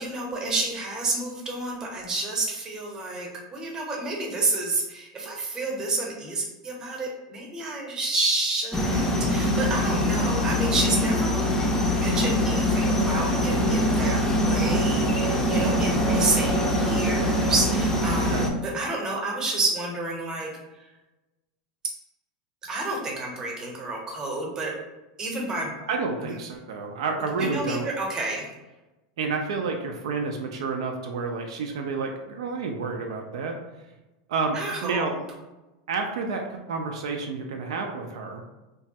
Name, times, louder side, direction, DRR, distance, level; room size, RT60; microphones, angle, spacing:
voice 1, 0.0-11.4 11.9-18.4 18.7-20.9 22.7-24.7 25.2-25.7 26.2-26.4 27.4-28.5 34.5-35.2, right 2 dB, 20° right, -1 dB, 0.8 m, -29 dB
sound 1, 8.7-18.5, left 1 dB, 15° left, 0.5 m, -23 dB
voice 2, 18.1-18.5 25.9-27.9 29.2-33.6 34.3-35.1 35.9-38.4, right 4 dB, 80° right, 2 dB, 0.4 m, -30 dB
3.0 x 2.2 x 2.7 m, 1.1 s
supercardioid pair, 125°, 3 cm